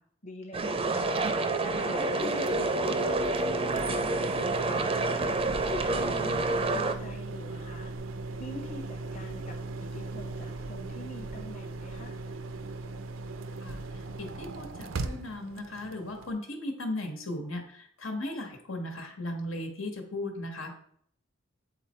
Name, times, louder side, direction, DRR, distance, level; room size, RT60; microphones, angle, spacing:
voice 1, 0.2-1.1 1.6-5.4 5.9-7.9 8.4-12.2, equal, 35° left, 1 dB, 0.9 m, -44 dB
sound 1, 0.5-6.9, right 2 dB, 30° right, 0.5 m, -28 dB
sound 2, 1.1-16.3, right 3 dB, 80° right, 0.6 m, -39 dB
voice 2, 14.2-20.7, left 1 dB, 85° left, 3 dB, 1.5 m, -36 dB
8.6 x 4.2 x 4.4 m, 0.65 s
head